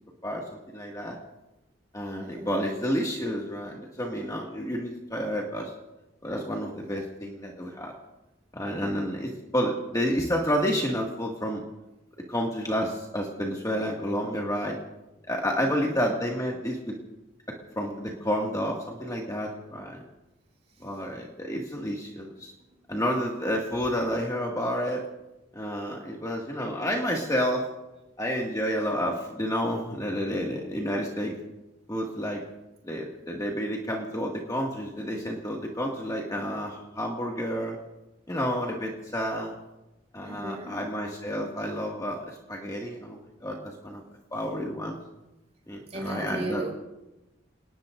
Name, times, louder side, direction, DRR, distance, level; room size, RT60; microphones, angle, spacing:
voice 1, 0.2-1.2 1.9-5.7 6.2-7.9 8.5-11.6 12.3-14.8 15.3-17.0 17.8-20.0 20.8-22.5 22.9-25.0 25.5-27.7 28.2-31.3 31.9-32.4 32.8-37.8 38.3-39.6 40.1-43.6 43.8-44.0 44.3-45.0 45.7-46.6, equal, 20° left, -2 dB, 2.0 m, -30 dB
voice 2, 2.2-2.6 9.2-9.3 15.6-16.0 40.2-40.9 45.9-46.7, right 2 dB, 35° right, 0 dB, 5.2 m, -36 dB
29.0 x 19.5 x 2.6 m, 1.0 s
head